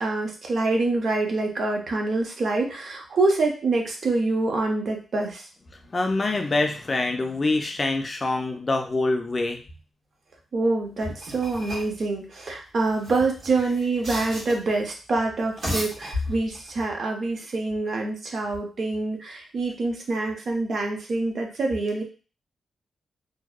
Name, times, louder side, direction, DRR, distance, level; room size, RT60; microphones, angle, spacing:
voice 1, 0.0-5.4 10.5-22.0, right 3 dB, 45° right, 1 dB, 0.5 m, -26 dB
voice 2, 5.9-9.6, left 2 dB, 25° left, 4 dB, 0.3 m, -25 dB
sound 1, 11.0-12.0 12.9-14.7 15.4-16.7, left 1 dB, 80° right, 1.1 m, -34 dB
2.6 x 2.0 x 2.3 m, 0.36 s
wide cardioid pair, 170°, 0 cm